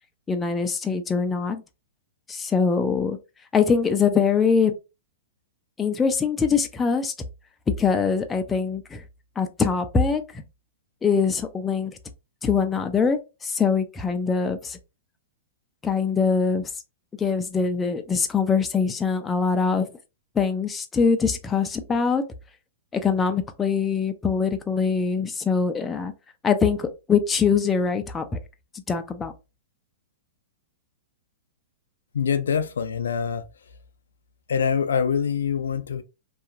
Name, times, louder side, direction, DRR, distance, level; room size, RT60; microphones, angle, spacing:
voice 1, 0.3-1.6 2.3-3.2 3.5-4.7 5.8-7.1 7.8-9.0 9.4-10.4 11.0-11.9 12.4-14.8 15.8-16.7 17.2-19.9 20.4-22.2 22.9-26.1 26.4-28.2 28.9-29.3, left 5 dB, 15° left, 0.4 m, -23 dB
voice 2, 32.1-33.4 34.5-36.0, left 7 dB, 85° left, 0.4 m, -24 dB
2.8 x 2.3 x 2.5 m
hypercardioid pair, 130°, 0 cm